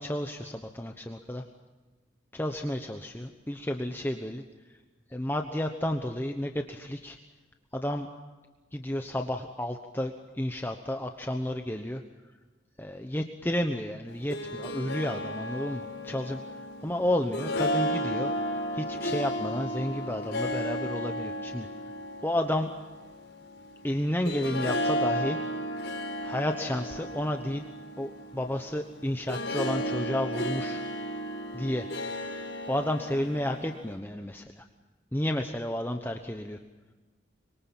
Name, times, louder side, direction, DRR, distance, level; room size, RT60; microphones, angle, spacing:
voice 1, 0.0-1.4 2.3-4.4 5.1-7.2 7.7-8.1 8.7-12.0 12.8-16.4 16.8-21.7 22.2-22.7 23.8-25.4 26.2-27.6 28.0-30.8 31.5-31.9 32.7-34.6 35.1-36.6, left 1 dB, 10° left, 4 dB, 1.0 m, -31 dB
Harp, 14.1-33.9, equal, 85° left, 4.6 m, -34 dB
25.5 x 23.0 x 7.2 m, 1.3 s
head